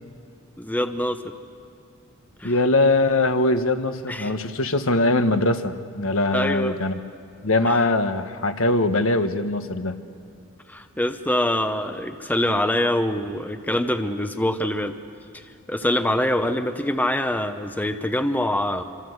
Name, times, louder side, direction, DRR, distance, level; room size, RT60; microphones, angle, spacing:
voice 1, 0.6-1.3 2.4-2.6 4.1-4.3 6.3-6.8 7.7-7.8 10.7-15.0 15.3-18.8, left 1 dB, 10° left, 8 dB, 0.8 m, -24 dB
voice 2, 2.4-7.0 7.4-10.0, left 2 dB, 65° left, 8 dB, 1.3 m, -22 dB
26.0 x 26.0 x 8.1 m, 2.5 s
head